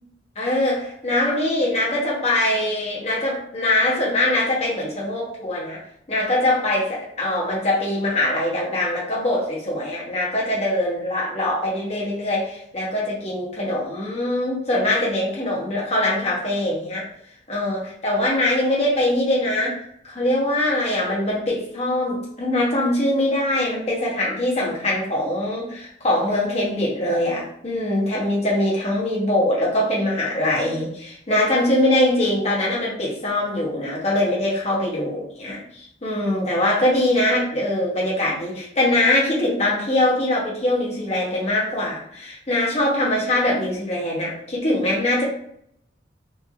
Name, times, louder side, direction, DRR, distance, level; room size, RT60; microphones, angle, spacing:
voice 1, 0.4-5.8 6.1-17.1 17.5-35.6 36.0-45.2, left 1 dB, 35° left, -5 dB, 0.8 m, -22 dB
3.0 x 2.5 x 2.3 m, 0.69 s
head